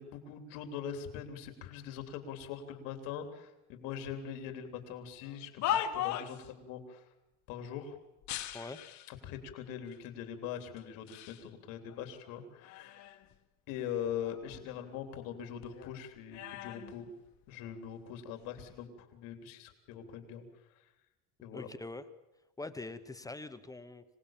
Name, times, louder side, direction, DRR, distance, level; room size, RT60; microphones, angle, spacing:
voice 1, 0.0-7.0 7.5-8.0 9.1-13.2 13.7-17.1 17.5-20.5 21.4-21.7, left 8 dB, 80° left, 6 dB, 3.6 m, -42 dB
sound 1, 5.2-6.5 8.2-9.2 9.9-10.0 10.8-11.4 11.9-13.3 13.7-15.4 15.6-17.8 18.5-18.8, left 11 dB, 55° left, 1.7 m, -39 dB
voice 2, 21.5-22.0 22.6-24.0, left 2 dB, 10° left, 10 dB, 1.0 m, -43 dB
26.0 x 18.5 x 7.4 m, 0.97 s
cardioid pair, 145°, 34 cm